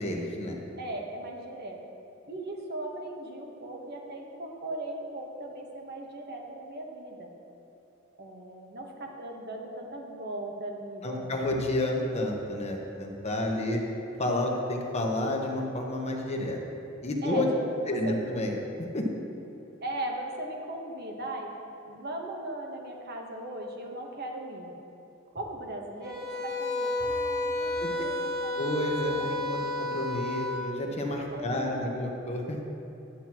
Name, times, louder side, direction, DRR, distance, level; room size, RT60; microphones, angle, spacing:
voice 1, 0.0-0.6 11.0-13.8 14.2-16.6 17.0-17.5 17.9-18.6 18.9-19.1 27.8-27.9 28.6-32.6, left 1 dB, 30° left, 1 dB, 1.1 m, -30 dB
voice 2, 0.8-1.8 2.3-7.3 8.2-11.6 17.2-18.2 19.8-21.5 21.9-24.7 25.3-28.6 29.1-29.7 31.3-32.0, right 1 dB, 50° right, 1 dB, 1.2 m, -38 dB
sound 1, 26.0-30.6, left 2 dB, 20° right, 1.8 m, -31 dB
11.5 x 8.9 x 3.0 m, 2.8 s
head